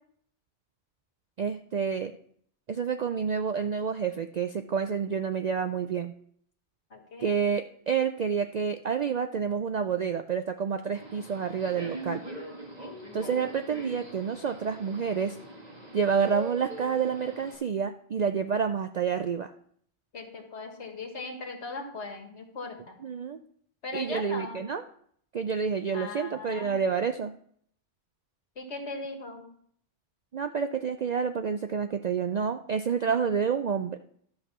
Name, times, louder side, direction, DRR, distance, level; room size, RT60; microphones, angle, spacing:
voice 1, 1.4-2.1 2.7-6.1 7.2-12.3 13.1-15.4 15.9-19.5 23.0-23.4 23.9-24.8 25.3-27.3 30.3-34.0, right 6 dB, 60° right, 8 dB, 0.4 m, -29 dB
voice 2, 6.9-7.4 20.1-23.0 23.8-24.6 25.9-26.7 28.6-29.4, left 3 dB, 70° left, 4 dB, 1.8 m, -39 dB
Subway metro underground, 11.0-17.6, right 1 dB, 35° right, 1.8 m, -42 dB
12.0 x 5.3 x 6.0 m, 0.63 s
omnidirectional pair, 1.2 m